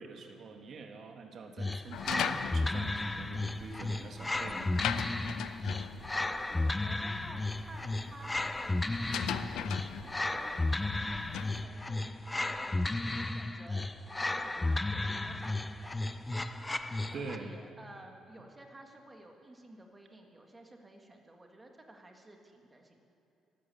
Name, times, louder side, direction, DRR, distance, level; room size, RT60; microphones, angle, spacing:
voice 1, 0.0-4.8 17.1-17.6, right 4 dB, 50° right, 4 dB, 1.2 m, -45 dB
sound 1, 1.6-17.5, left 2 dB, 15° left, 0.5 m, -34 dB
sound 2, 1.9-11.6, left 10 dB, 75° left, 0.6 m, -40 dB
voice 2, 6.4-9.8 10.0-13.9 14.2-15.9 16.7-23.0, right 1 dB, 15° right, 2 dB, 1.8 m, -53 dB
14.5 x 12.5 x 6.8 m, 2.9 s
cardioid pair, 125°, 0 cm